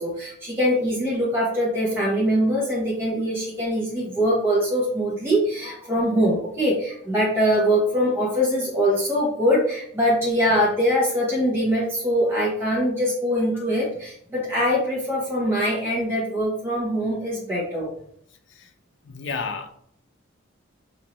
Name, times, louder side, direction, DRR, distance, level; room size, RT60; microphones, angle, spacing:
voice 1, 0.0-17.9, equal, 10° right, -6 dB, 0.8 m, -23 dB
voice 2, 19.1-19.7, left 4 dB, 60° left, 5 dB, 0.5 m, -30 dB
5.5 x 2.6 x 3.0 m, 0.66 s
head